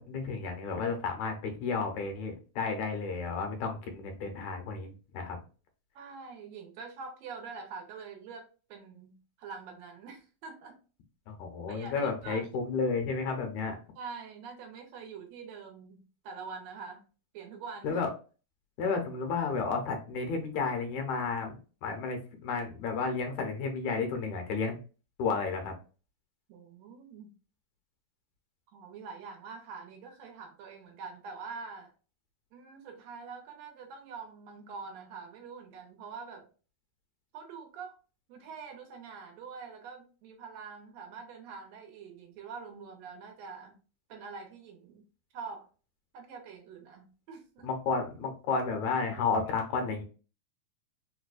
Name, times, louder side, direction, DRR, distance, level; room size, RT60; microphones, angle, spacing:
voice 1, 0.0-5.4 11.3-13.8 17.8-18.1 18.8-24.8 25.2-25.7 47.6-50.0, left 4 dB, 75° left, 4 dB, 2.0 m, -32 dB
voice 2, 5.9-10.8 11.7-12.5 14.0-17.0 17.3-18.0 26.5-27.3 28.7-31.9 32.5-36.5 37.3-38.0 38.3-43.8 44.1-45.0 45.3-45.7 46.1-47.7, right 5 dB, 75° right, 4 dB, 1.7 m, -45 dB
4.6 x 2.1 x 2.4 m, 0.35 s
omnidirectional pair, 3.4 m